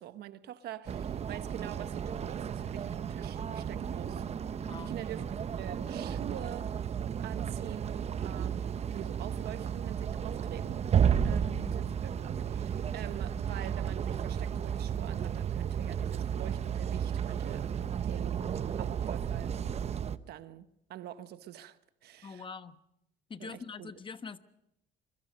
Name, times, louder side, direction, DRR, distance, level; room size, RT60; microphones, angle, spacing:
voice 1, 0.0-5.2 5.6-6.7 7.2-10.9 11.2-19.6 20.0-22.5 23.4-23.9, right 12 dB, 75° right, 1.2 m, -46 dB
sound 1, 0.9-20.2, right 8 dB, 40° right, 0.9 m, -33 dB
voice 2, 4.6-5.0 11.5-11.8 22.2-22.8 23.3-24.4, left 5 dB, 30° left, 1.2 m, -44 dB
25.5 x 23.0 x 5.3 m
cardioid pair, 110°, 17 cm